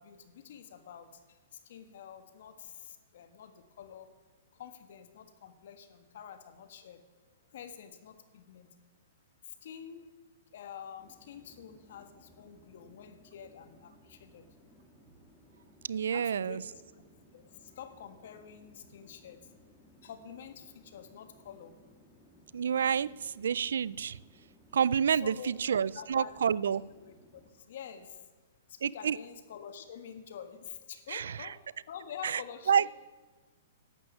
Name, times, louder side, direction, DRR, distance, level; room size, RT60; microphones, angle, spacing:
voice 1, 0.0-4.1 4.5-7.0 7.5-8.7 9.6-10.1 10.5-14.4 16.1-16.8 17.3-19.4 20.0-21.7 25.2-26.4 27.0-27.4 27.7-28.2 28.7-31.6 31.9-32.9, left 8 dB, 65° left, 10 dB, 1.5 m, -48 dB
sound 1, 11.0-27.5, equal, 5° left, 2.6 m, -61 dB
voice 2, 15.9-16.6 22.5-24.2 24.7-26.8 28.8-29.2 31.1-31.5 32.2-32.4 32.7-32.9, right 7 dB, 80° right, 22 dB, 0.4 m, -29 dB
11.5 x 7.9 x 9.5 m, 1.3 s
hypercardioid pair, 140°, 0 cm